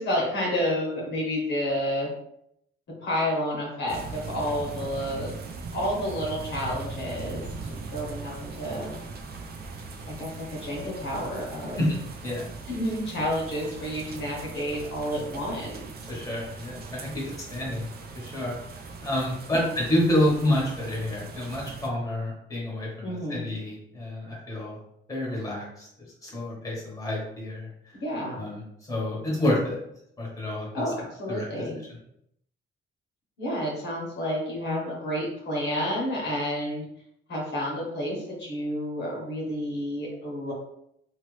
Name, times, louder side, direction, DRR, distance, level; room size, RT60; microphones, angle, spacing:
voice 1, 0.0-2.1 3.0-5.3 5.7-9.0 10.1-11.8 12.7-16.3 19.5-19.6 23.0-23.4 27.9-28.4 30.7-31.8 33.4-36.8 37.3-40.5, equal, 60° left, -3 dB, 1.2 m, -30 dB
sound 1, 3.9-21.9, right 4 dB, 50° right, 0.5 m, -40 dB
voice 2, 16.1-17.9 18.1-18.6 19.0-24.8 25.1-25.9 26.2-27.9 28.4-28.6 28.9-29.8 30.2-30.8 31.3-31.5, left 1 dB, 15° left, -3 dB, 1.3 m, -28 dB
2.8 x 2.5 x 3.2 m, 0.75 s
cardioid pair, 90°, 20 cm